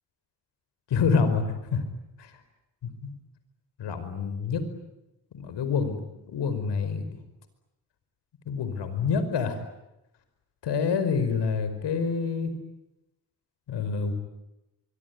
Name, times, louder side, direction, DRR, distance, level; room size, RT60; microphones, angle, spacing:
voice 1, 0.9-1.8 2.2-2.3 3.0-3.1 3.8-4.7 5.3-6.0 6.3-7.0 8.5-9.6 10.6-12.5 13.7-14.1, left 5 dB, 85° left, 10 dB, 5.2 m, -27 dB
25.0 x 24.0 x 9.6 m, 0.93 s
cardioid pair, 75°, 41 cm